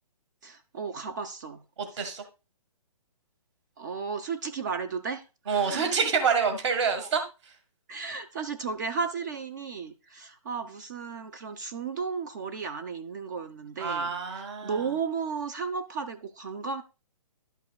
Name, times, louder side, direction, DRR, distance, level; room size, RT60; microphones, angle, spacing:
voice 1, 0.4-1.6 1.9-2.0 3.8-6.0 7.0-7.1 7.9-16.8, right 5 dB, 30° right, 0.4 m, -34 dB
voice 2, 5.5-7.2 13.8-14.8, right 6 dB, 50° right, 1.6 m, -27 dB
11.5 x 5.4 x 2.3 m
hypercardioid pair, 160°, 19 cm